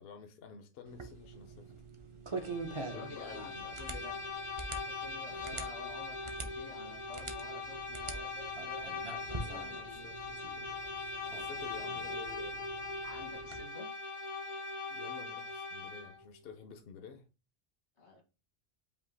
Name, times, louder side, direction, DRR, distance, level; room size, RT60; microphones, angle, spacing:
voice 1, 0.0-1.7 2.9-3.7 5.3-5.6 9.4-10.7 11.3-12.7 14.9-17.3, left 6 dB, 65° left, 6 dB, 0.8 m, -51 dB
sound 1, 0.9-13.6, right 3 dB, 35° right, 0.7 m, -45 dB
Bowed string instrument, 2.3-16.2, left 3 dB, 40° left, 0.5 m, -41 dB
voice 2, 2.7-4.2 4.7-10.1 12.0-12.1 13.0-13.9 18.0-18.2, left 2 dB, 85° left, 0 dB, 1.9 m, -51 dB
5.5 x 2.4 x 3.9 m, 0.31 s
omnidirectional pair, 1.1 m